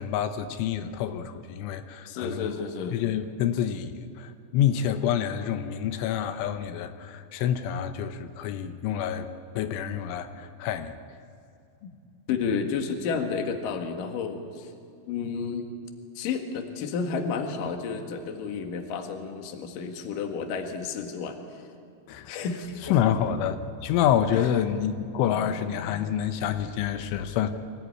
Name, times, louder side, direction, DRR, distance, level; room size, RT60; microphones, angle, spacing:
voice 1, 0.0-2.5 2.9-9.3 9.6-10.9 22.1-22.3 22.9-27.5, left 9 dB, 85° left, 9 dB, 3.4 m, -27 dB
voice 2, 2.1-3.0 12.3-14.7 15.1-15.6 16.2-21.4 22.3-23.0 24.3-24.5, left 5 dB, 55° left, 5 dB, 2.9 m, -31 dB
24.5 x 17.0 x 9.6 m, 2.4 s
omnidirectional pair, 5.5 m